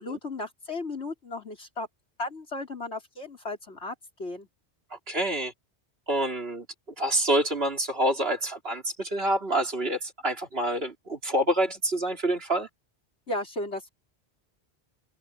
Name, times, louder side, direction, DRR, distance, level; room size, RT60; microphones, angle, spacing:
voice 1, 0.0-1.9 2.2-4.5 13.3-13.9, left 2 dB, 90° left, 5.1 m, -35 dB
voice 2, 4.9-5.5 6.1-6.7 7.0-12.7, right 1 dB, 70° right, 3.4 m, -27 dB
open air
omnidirectional pair, 1.1 m